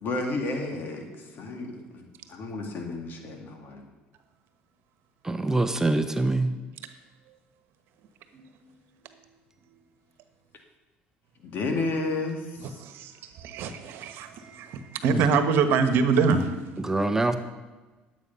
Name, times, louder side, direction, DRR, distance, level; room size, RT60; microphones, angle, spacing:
voice 1, 0.0-3.9 11.4-12.8, left 2 dB, 55° left, 3 dB, 2.3 m, -32 dB
voice 2, 5.2-6.5 15.1-15.2 16.8-17.4, right 2 dB, 10° right, 8 dB, 0.8 m, -24 dB
voice 3, 12.8-16.5, right 5 dB, 70° right, 9 dB, 1.2 m, -25 dB
11.0 x 8.4 x 5.5 m, 1.2 s
supercardioid pair, 85°, 4 cm